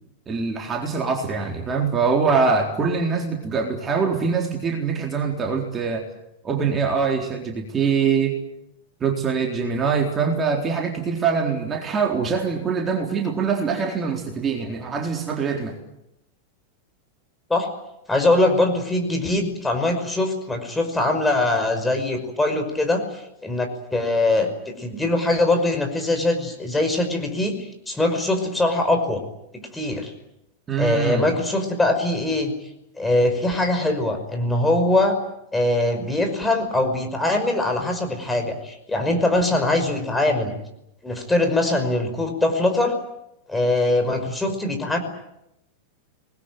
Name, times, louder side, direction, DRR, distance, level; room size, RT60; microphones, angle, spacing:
voice 1, 0.3-6.1 6.4-8.4 9.0-15.7 30.7-31.2, right 5 dB, 20° right, 1 dB, 4.0 m, -23 dB
voice 2, 18.1-23.0 23.4-29.2 29.5-30.1 30.8-32.5 33.0-35.2 35.5-40.6 41.0-43.0 43.5-45.0, left 2 dB, 10° left, 5 dB, 5.5 m, -22 dB
26.0 x 21.0 x 9.2 m, 0.84 s
figure-of-eight pair, 90°, 0 cm